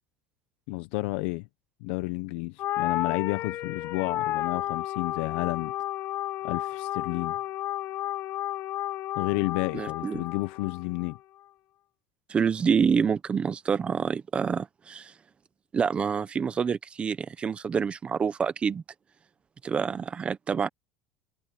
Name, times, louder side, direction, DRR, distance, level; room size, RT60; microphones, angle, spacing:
voice 1, 0.7-1.5 1.8-5.7 6.4-7.4 9.2-11.2, left 21 dB, 70° left, 0.8 m, -31 dB
sound 1, 2.6-11.2, left 13 dB, 45° left, 1.7 m, -32 dB
voice 2, 9.7-10.2 12.3-15.1 15.7-18.8 19.6-20.7, right 6 dB, 20° right, 0.8 m, -27 dB
cardioid pair, 160°, 6 cm